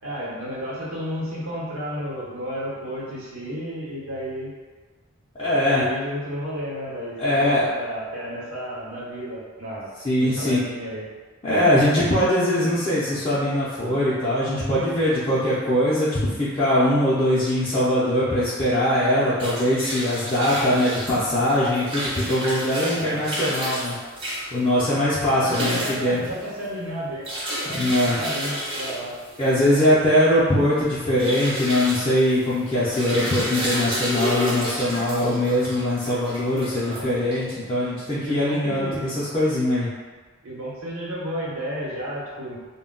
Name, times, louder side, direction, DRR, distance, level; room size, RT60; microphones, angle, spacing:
voice 1, 0.0-4.5 5.5-9.9 10.2-11.1 23.0-23.2 25.4-27.3 27.7-29.2 36.7-37.1 38.2-39.2 40.4-42.6, equal, 85° right, -7 dB, 0.9 m, -32 dB
voice 2, 5.4-5.9 7.2-7.7 10.0-10.6 11.4-24.0 24.5-26.2 27.7-28.2 29.4-39.9, left 1 dB, 25° left, -10 dB, 0.4 m, -21 dB
sound 1, 19.1-37.6, equal, 25° right, 0.5 m, -31 dB
2.1 x 2.1 x 3.6 m, 1.4 s
head